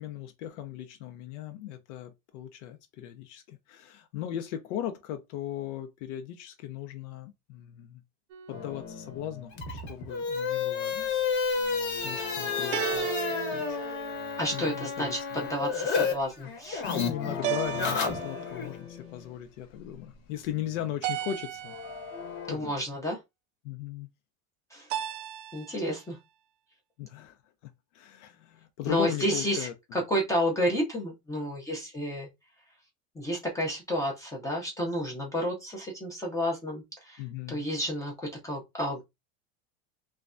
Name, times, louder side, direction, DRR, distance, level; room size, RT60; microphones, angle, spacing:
voice 1, 0.0-8.0 8.5-11.1 11.5-13.1 13.5-13.8 14.3-15.5 16.8-21.8 22.4-22.8 23.6-24.1 27.0-27.4 27.6-29.7 37.2-37.6, left 11 dB, 90° left, 0.6 m, -38 dB
sound 1, 8.3-9.0 12.7-14.7 17.4-18.8 21.0-22.2 24.9-25.9, right 11 dB, 85° right, 0.5 m, -35 dB
sound 2, 8.5-9.6 9.9-10.2 10.5-11.2 11.5-14.6 16.2-16.3 16.6-22.5, left 5 dB, 65° left, 0.9 m, -41 dB
sound 3, 9.5-16.1 16.4-18.7, left 5 dB, 30° left, 0.9 m, -31 dB
voice 2, 14.4-16.8 22.5-23.2 24.7-24.9 25.5-26.2 28.9-32.3 33.2-37.2 37.5-39.0, equal, 10° left, 0.5 m, -31 dB
3.2 x 2.2 x 2.4 m
supercardioid pair, 150°, 34 cm